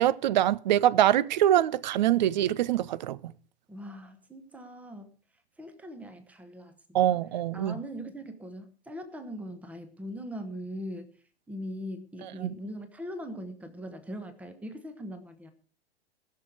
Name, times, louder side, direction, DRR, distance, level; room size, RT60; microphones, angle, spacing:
voice 1, 0.0-3.3 6.9-7.7 12.4-12.5, right 12 dB, 45° right, 0.5 m, -24 dB
voice 2, 3.7-5.1 5.6-7.2 7.5-11.1 11.5-15.5, equal, 5° right, 1.2 m, -41 dB
19.5 x 6.6 x 4.7 m
figure-of-eight pair, 100°, 32 cm